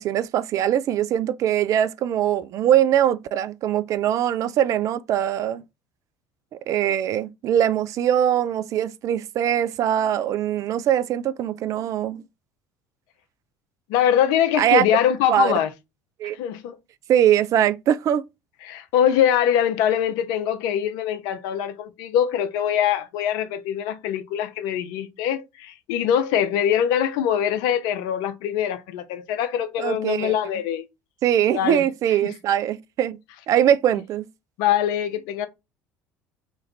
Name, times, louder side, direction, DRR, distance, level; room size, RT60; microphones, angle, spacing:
voice 1, 0.0-5.6 6.7-12.2 14.6-14.8 15.3-15.5 16.2-16.4 17.1-18.2 29.8-30.3 31.2-33.2 33.5-34.3, right 10 dB, 40° right, 0.4 m, -22 dB
voice 2, 13.9-15.7 16.4-16.8 18.6-30.8 31.5-31.8 32.2-32.3 34.6-35.5, left 9 dB, 55° left, 0.6 m, -23 dB
3.0 x 2.5 x 4.1 m
figure-of-eight pair, 60°, 8 cm